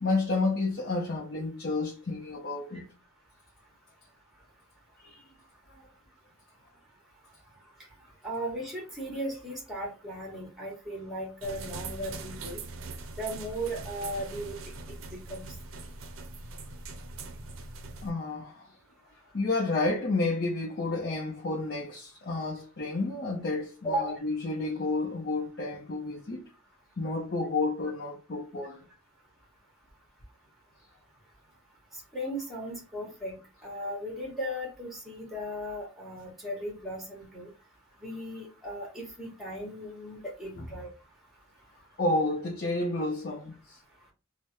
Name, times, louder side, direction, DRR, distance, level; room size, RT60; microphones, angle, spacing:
voice 1, 0.0-2.9 5.0-5.2 5.7-5.8 18.0-18.7 19.3-26.5 27.0-28.9 40.6-40.7 42.0-43.8, left 3 dB, 50° left, 0.6 m, -30 dB
voice 2, 8.2-12.6 13.1-14.6 14.9-15.5 23.8-24.1 32.1-33.3 33.6-37.5 38.0-40.9, equal, ahead, 0.9 m, -36 dB
sound 1, 11.4-18.1, right 3 dB, 75° right, 0.5 m, -42 dB
3.3 x 2.0 x 2.9 m
head